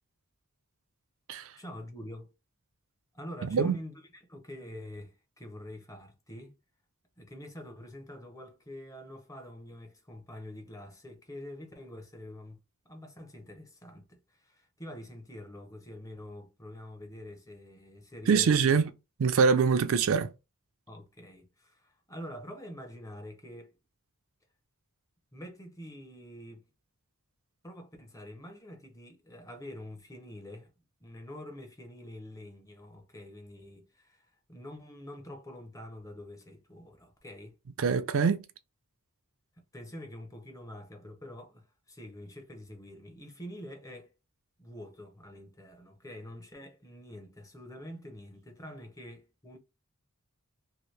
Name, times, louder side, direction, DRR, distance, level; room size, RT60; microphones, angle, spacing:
voice 1, 1.6-2.3 3.1-4.0 4.3-6.5 7.2-18.8 20.9-23.7 25.3-26.6 27.6-30.7 31.0-37.5 39.7-44.1 44.6-49.6, equal, 15° left, 0.7 m, -46 dB
voice 2, 3.4-3.8 18.3-18.9 19.2-20.3 37.8-38.5, right 5 dB, 60° right, 0.4 m, -24 dB
2.9 x 2.7 x 3.1 m
head